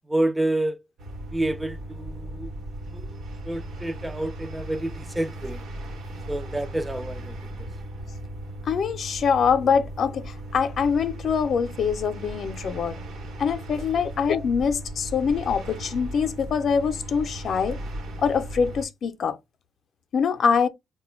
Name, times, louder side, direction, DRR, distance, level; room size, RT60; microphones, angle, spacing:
voice 1, 0.1-0.8 1.3-2.5 2.9-3.1 3.5-5.6 6.3-7.4 13.7-13.8, right 1 dB, 10° right, 0.3 m, -28 dB
sound 1, 1.0-18.9, right 1 dB, 75° right, 1.0 m, -37 dB
voice 2, 8.7-13.0 13.4-17.8 18.2-19.4 20.1-20.7, left 6 dB, 60° left, 0.5 m, -24 dB
4.0 x 2.2 x 3.0 m
cardioid pair, 90°, 0 cm